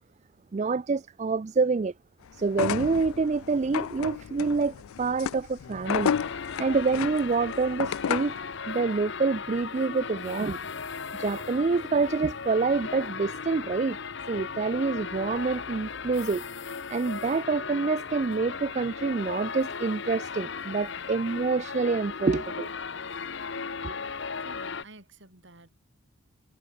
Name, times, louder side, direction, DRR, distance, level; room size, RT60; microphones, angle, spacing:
voice 1, 0.5-1.9 2.3-6.2 6.6-8.4 8.7-10.6 11.2-14.0 14.3-16.4 16.9-22.7 23.8-23.9, right 4 dB, 30° right, 0.3 m, -27 dB
sound 1, 2.5-8.4, left 8 dB, 80° left, 0.4 m, -32 dB
sound 2, 5.8-24.8, left 5 dB, 55° left, 1.0 m, -37 dB
voice 2, 24.4-25.7, right 2 dB, 55° right, 4.6 m, -50 dB
head